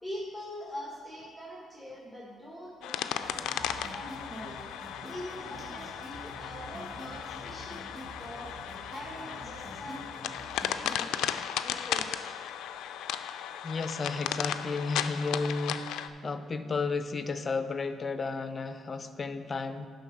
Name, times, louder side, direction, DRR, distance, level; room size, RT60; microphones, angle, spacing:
voice 1, 0.0-4.7 5.0-8.5 8.9-11.2 11.6-12.3, equal, ahead, -4 dB, 1.7 m, -43 dB
sound 1, 2.8-16.1, left 10 dB, 90° left, 0.4 m, -36 dB
sound 2, 3.2-11.0, right 1 dB, 40° right, 1.5 m, -47 dB
voice 2, 11.3-11.7 13.6-15.9 16.2-19.9, left 4 dB, 35° left, 10 dB, 0.6 m, -33 dB
11.0 x 3.9 x 6.4 m, 2.2 s
cardioid pair, 90°, 0 cm